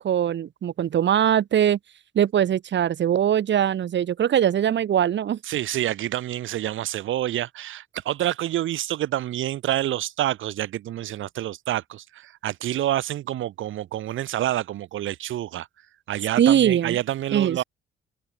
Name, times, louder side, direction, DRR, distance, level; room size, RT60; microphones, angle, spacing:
voice 1, 0.0-1.8 2.2-5.4 16.4-17.0 17.3-17.6, right 10 dB, 65° right, 7.4 m, -21 dB
voice 2, 5.4-15.7 16.1-17.6, right 13 dB, 80° right, 5.7 m, -28 dB
cardioid pair, 90°, 20 cm